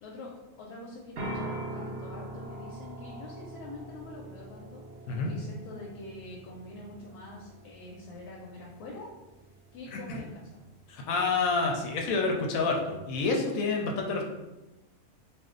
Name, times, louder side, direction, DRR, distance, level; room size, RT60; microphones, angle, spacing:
voice 1, 0.0-4.8 5.3-9.1 9.7-10.6, left 2 dB, 90° left, -3 dB, 1.1 m, -45 dB
sound 1, 1.2-12.9, right 1 dB, 60° right, 0.8 m, -44 dB
voice 2, 10.9-14.2, left 3 dB, 70° left, 1 dB, 0.9 m, -28 dB
2.5 x 2.3 x 3.7 m, 1.0 s
omnidirectional pair, 1.6 m